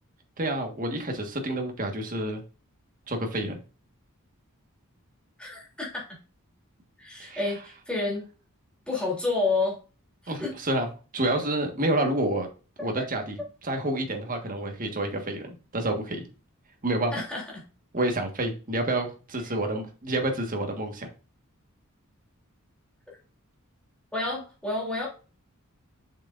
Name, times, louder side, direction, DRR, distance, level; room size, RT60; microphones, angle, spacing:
voice 1, 0.4-2.4 3.1-3.6 7.2-7.4 10.3-10.9 11.1-12.5 12.8-16.2 16.8-17.1 17.9-21.1, right 1 dB, 40° right, 4 dB, 1.6 m, -29 dB
voice 2, 5.4-6.0 7.0-8.3 8.9-9.8 10.2-10.6 17.1-17.4 19.4-19.5 24.1-25.1, left 3 dB, 5° left, -4 dB, 3.1 m, -29 dB
7.4 x 6.4 x 2.6 m, 0.35 s
head